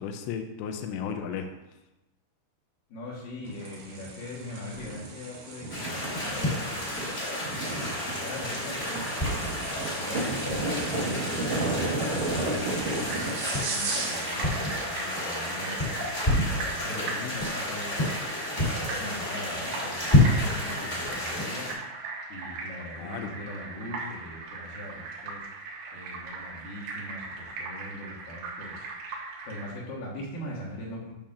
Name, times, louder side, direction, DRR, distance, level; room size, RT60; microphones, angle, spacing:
voice 1, 0.0-1.5 16.9-17.3 23.0-23.3, left 7 dB, 85° left, 6 dB, 2.8 m, -35 dB
voice 2, 2.9-9.5 9.9-21.8 22.3-28.9 29.4-31.1, left 1 dB, 65° left, -5 dB, 2.7 m, -41 dB
sound 1, 3.5-14.4, right 2 dB, 60° right, 1.9 m, -33 dB
sound 2, 5.7-21.7, left 1 dB, 20° left, 1.2 m, -29 dB
sound 3, 12.8-29.7, right 3 dB, 80° right, 3.5 m, -39 dB
8.7 x 7.1 x 2.5 m, 0.98 s
omnidirectional pair, 4.9 m